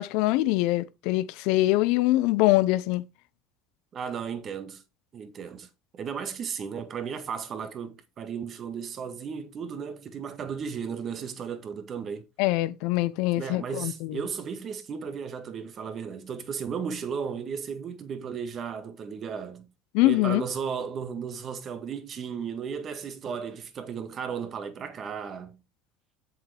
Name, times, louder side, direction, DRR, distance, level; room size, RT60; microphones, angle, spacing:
voice 1, 0.0-3.0 12.4-14.2 19.9-20.4, left 18 dB, 70° left, 0.9 m, -24 dB
voice 2, 3.9-4.8 5.1-12.3 13.3-19.7 20.0-25.6, right 6 dB, 40° right, 1.8 m, -35 dB
8.0 x 7.3 x 3.5 m
supercardioid pair, 105°, 0 cm